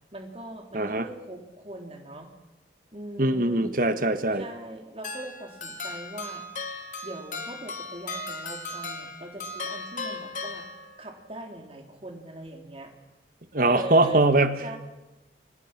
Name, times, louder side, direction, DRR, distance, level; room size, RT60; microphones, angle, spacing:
voice 1, 0.1-2.3 2.9-3.7 4.4-6.4 7.0-10.7 11.0-12.9 13.6-14.2 14.6-14.8, right 1 dB, 30° right, 2 dB, 3.7 m, -40 dB
voice 2, 0.7-1.0 3.2-4.4 13.5-14.8, right 2 dB, 50° right, 9 dB, 1.5 m, -22 dB
sound 1, 5.0-11.2, left 3 dB, 45° left, 2.6 m, -37 dB
28.5 x 25.5 x 6.1 m, 1.0 s
head